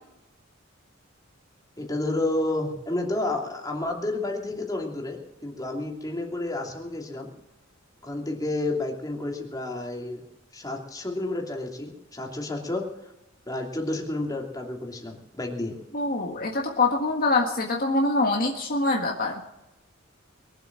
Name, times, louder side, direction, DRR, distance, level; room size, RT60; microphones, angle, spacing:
voice 1, 1.8-7.3 8.0-10.2 10.5-12.8 13.5-15.7, left 2 dB, 20° left, 0 dB, 2.9 m, -30 dB
voice 2, 15.9-19.4, left 2 dB, 45° left, 0 dB, 1.6 m, -24 dB
22.5 x 8.0 x 7.4 m, 0.91 s
head